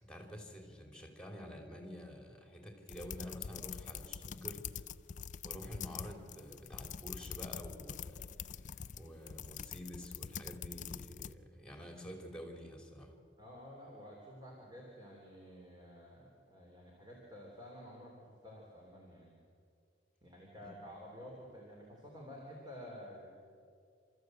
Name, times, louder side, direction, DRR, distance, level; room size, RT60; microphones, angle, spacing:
voice 1, 0.0-4.6 5.4-8.6 9.0-13.1 20.6-20.7, equal, 5° left, 3 dB, 3.1 m, -49 dB
sound 1, 2.9-11.3, left 8 dB, 40° left, 0.4 m, -45 dB
voice 2, 13.4-19.3 20.2-23.3, equal, 20° right, -2 dB, 3.6 m, -51 dB
29.0 x 14.0 x 7.9 m, 2.3 s
head